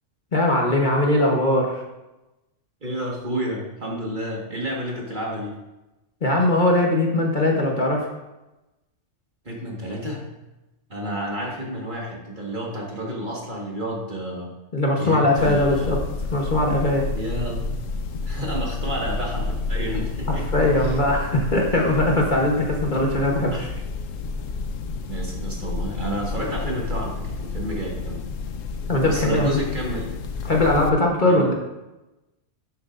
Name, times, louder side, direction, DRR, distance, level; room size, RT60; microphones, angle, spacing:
voice 1, 0.3-1.8 6.2-8.1 14.7-16.0 16.3-17.0 20.3-23.5 28.9-29.6 30.4-31.5, left 1 dB, 40° left, -1 dB, 1.3 m, -20 dB
voice 2, 2.8-5.5 9.5-10.2 10.9-14.5 15.0-16.0 17.1-17.6 18.3-21.0 23.5-23.8 25.1-28.2 29.0-30.1 31.2-31.5, right 1 dB, 40° right, -2 dB, 1.8 m, -30 dB
sound 1, 15.4-30.9, left 4 dB, 80° left, 1.1 m, -30 dB
12.0 x 7.9 x 2.6 m, 1.0 s
omnidirectional pair, 1.3 m